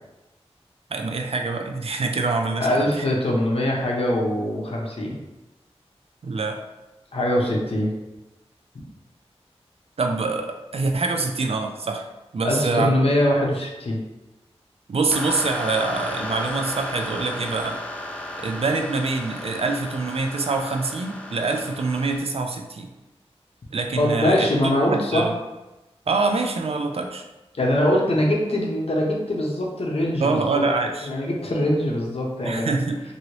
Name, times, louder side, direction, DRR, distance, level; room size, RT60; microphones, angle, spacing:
voice 1, 0.9-2.9 6.2-6.6 10.0-12.1 12.3-12.9 14.9-17.8 18.4-22.9 23.7-24.5 24.9-25.4 26.1-27.2 30.2-31.1 32.4-33.0, right 3 dB, 65° right, 4 dB, 0.4 m, -25 dB
voice 2, 2.6-5.2 7.1-7.9 12.4-14.0 24.0-25.3 27.5-30.6 31.0-32.7, left 1 dB, 60° left, -1 dB, 0.7 m, -22 dB
sound 1, 15.1-22.2, left 1 dB, 10° left, 0.4 m, -34 dB
2.8 x 2.7 x 3.0 m, 1.0 s
wide cardioid pair, 85°, 11 cm